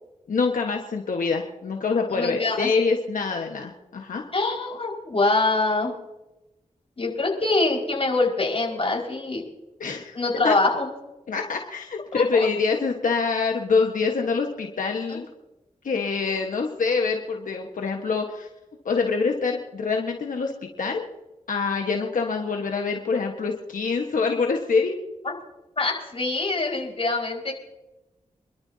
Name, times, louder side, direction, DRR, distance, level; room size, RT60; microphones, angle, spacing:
voice 1, 0.3-4.2 9.8-10.2 10.4-10.6 11.3-15.3 15.8-18.5 18.8-21.0 21.5-25.0, left 4 dB, 85° left, 2 dB, 1.4 m, -25 dB
voice 2, 2.1-2.7 4.3-5.9 7.0-9.4 10.1-10.9 12.1-12.5 15.1-15.2 25.2-25.3 25.8-27.5, left 3 dB, 45° left, -1 dB, 5.4 m, -24 dB
28.0 x 12.5 x 2.8 m, 0.97 s
cardioid pair, 55°, 13 cm